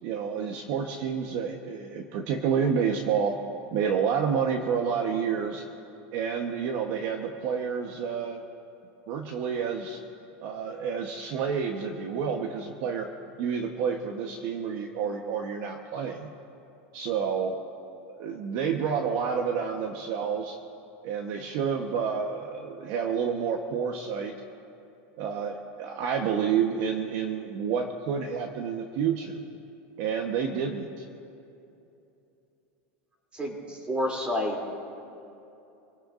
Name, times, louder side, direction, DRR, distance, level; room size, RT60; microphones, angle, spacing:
voice 1, 0.0-3.4 3.7-5.6 6.1-8.4 9.1-10.0 10.4-13.1 13.4-16.3 16.9-17.6 18.1-20.6 21.0-24.3 25.2-29.4 30.0-31.1, right 6 dB, 55° right, 3 dB, 1.1 m, -29 dB
voice 2, 33.3-34.6, left 1 dB, 15° right, 0 dB, 2.9 m, -29 dB
26.0 x 18.5 x 2.6 m, 2.8 s
supercardioid pair, 145°, 7 cm